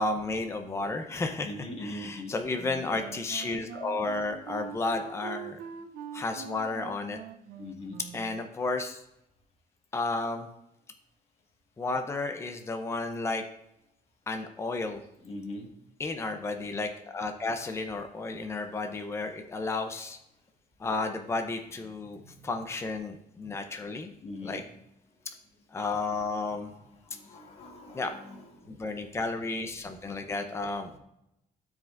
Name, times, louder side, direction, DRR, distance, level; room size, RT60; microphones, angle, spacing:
voice 1, 0.0-1.5 1.8-5.6 6.1-7.2 8.1-9.0 9.9-10.5 11.8-13.4 14.3-15.0 16.0-20.2 20.8-24.1 24.4-24.6 25.7-26.7 27.9-28.1 28.7-30.9, left 3 dB, 20° left, 6 dB, 0.6 m, -32 dB
voice 2, 1.4-2.3 7.6-8.0 15.2-15.7 22.2-22.3 24.2-24.6 26.6-29.1, left 1 dB, 40° left, 0 dB, 1.7 m, -42 dB
Wind instrument woodwind instrument, 2.6-8.4, right 8 dB, 90° right, 0.6 m, -43 dB
12.5 x 5.0 x 2.5 m, 0.81 s
cardioid pair, 135°, 15 cm